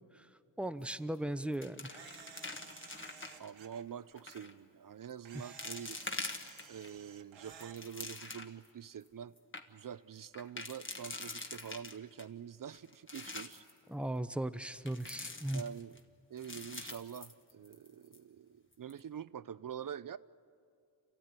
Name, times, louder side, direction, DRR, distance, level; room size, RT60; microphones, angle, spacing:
voice 1, 0.6-2.0 5.3-5.4 13.9-15.6, right 1 dB, 5° right, 0.6 m, -37 dB
sound 1, 0.8-1.2 1.4-3.5 4.2-4.5 5.1-5.2 5.6-6.9 7.4-8.7 9.1-9.2 9.4-9.6 10.3-12.2 12.7-13.7 14.9-16.0 16.4-17.9 18.1-18.2 18.7-19.0, left 2 dB, 25° left, 1.4 m, -45 dB
Camera, 1.9-3.8 5.3-7.8, right 7 dB, 80° right, 1.3 m, -54 dB
voice 2, 3.4-6.0 6.7-9.3 9.7-13.6 15.5-16.0 16.3-20.2, right 8 dB, 50° right, 0.5 m, -46 dB
28.0 x 15.0 x 9.5 m
wide cardioid pair, 115°, 45 cm